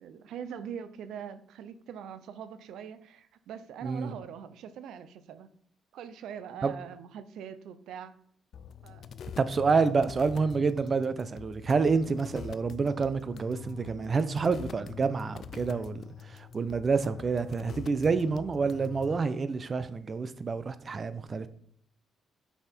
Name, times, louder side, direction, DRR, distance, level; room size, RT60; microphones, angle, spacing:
voice 1, 0.0-5.5 5.9-8.1 8.8-9.1, right 8 dB, 80° right, 0.7 m, -42 dB
voice 2, 3.8-4.1 6.6-6.7 9.4-21.5, right 4 dB, 40° right, 0.8 m, -28 dB
sound 1, 8.5-19.2, left 7 dB, 60° left, 0.5 m, -44 dB
8.1 x 5.8 x 4.5 m
cardioid pair, 90°, 0 cm